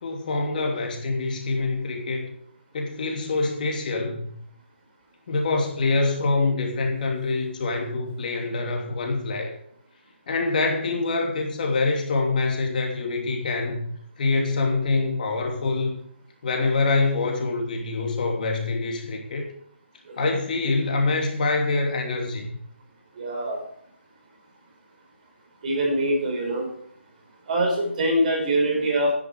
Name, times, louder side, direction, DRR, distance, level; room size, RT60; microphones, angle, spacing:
voice 1, 0.0-2.2 2.7-4.4 5.3-9.5 10.3-13.8 14.2-16.0 16.4-19.5 20.2-22.5, left 3 dB, 45° left, 3.0 m, -25 dB
voice 2, 23.2-23.6 25.6-26.7 27.5-29.1, right 1 dB, 40° right, 5.9 m, -23 dB
13.0 x 10.5 x 4.9 m
figure-of-eight pair, 150°, 7 cm